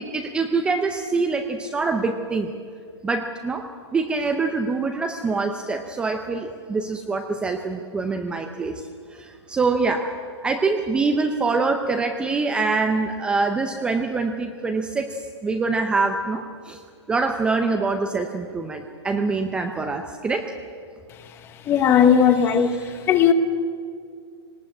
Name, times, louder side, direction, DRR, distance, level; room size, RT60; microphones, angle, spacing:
voice 1, 0.0-2.5 3.0-3.7 3.9-8.8 9.1-10.1 10.4-16.8 17.1-20.6 22.4-23.0, right 3 dB, 5° right, 5 dB, 0.6 m, -25 dB
voice 2, 21.7-22.8 23.1-23.3, left 8 dB, 15° left, 11 dB, 0.9 m, -16 dB
19.0 x 19.0 x 8.6 m, 2.2 s
hypercardioid pair, 160°, 15 cm